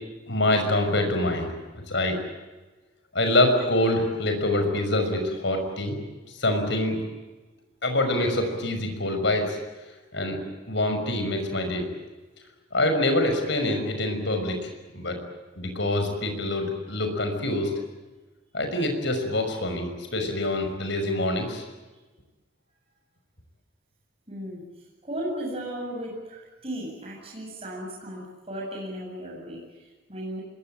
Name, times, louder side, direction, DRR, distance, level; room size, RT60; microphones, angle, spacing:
voice 1, 0.3-2.2 3.1-6.0 6.3-7.0 7.8-9.6 10.1-10.4 10.6-11.8 12.7-14.7 14.9-15.2 15.6-17.7 18.5-21.6, left 1 dB, 60° left, 5 dB, 5.9 m, -25 dB
voice 2, 24.3-24.6 25.0-30.4, equal, 30° right, -3 dB, 7.9 m, -35 dB
26.0 x 22.0 x 8.8 m, 1.2 s
head